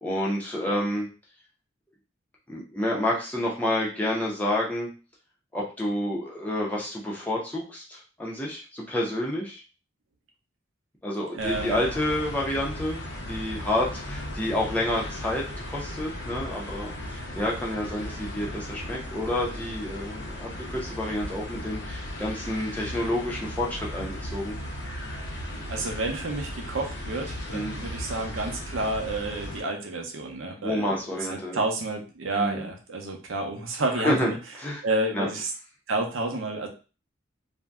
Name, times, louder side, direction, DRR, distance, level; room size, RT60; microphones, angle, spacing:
voice 1, 0.0-1.1 2.5-4.9 5.5-9.6 11.0-24.6 27.5-27.7 30.6-31.6 32.3-32.7 34.0-34.3 34.6-34.8 35.1-35.3, left 1 dB, 10° left, -4 dB, 0.6 m, -29 dB
voice 2, 11.3-11.8 25.7-31.0 31.3-34.4 34.8-35.5 35.9-36.7, right 2 dB, 85° right, 2 dB, 0.7 m, -30 dB
sound 1, 11.4-29.6, left 1 dB, 55° left, 0.7 m, -36 dB
2.6 x 2.1 x 3.4 m, 0.34 s
head